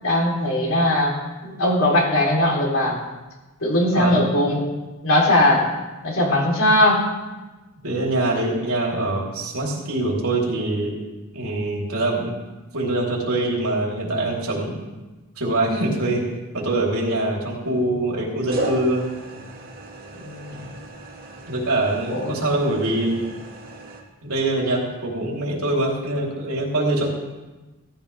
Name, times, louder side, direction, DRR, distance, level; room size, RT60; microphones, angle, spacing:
voice 1, 0.0-1.2 1.4-3.0 3.6-4.7 5.0-5.7 6.0-7.1 20.1-20.6 22.1-22.4, left 1 dB, 70° left, -2 dB, 3.8 m, -19 dB
voice 2, 7.8-10.9 11.3-12.4 12.7-14.7 15.4-16.2 16.5-19.1 21.5-23.2 24.2-27.1, right 2 dB, 90° right, -3 dB, 3.6 m, -23 dB
sound 1, 16.5-17.2 18.5-24.0, right 2 dB, 40° right, 2.0 m, -35 dB
16.5 x 14.5 x 3.5 m, 1.2 s
head